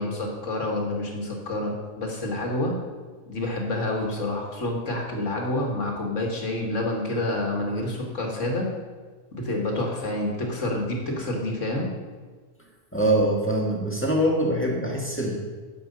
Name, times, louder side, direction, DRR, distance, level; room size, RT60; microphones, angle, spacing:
voice 1, 0.0-2.7 3.3-8.7 9.3-11.9, left 1 dB, 60° left, 0 dB, 2.4 m, -28 dB
voice 2, 12.9-15.4, right 1 dB, 10° left, -2 dB, 1.9 m, -23 dB
12.0 x 7.7 x 5.4 m, 1.4 s
omnidirectional pair, 1.4 m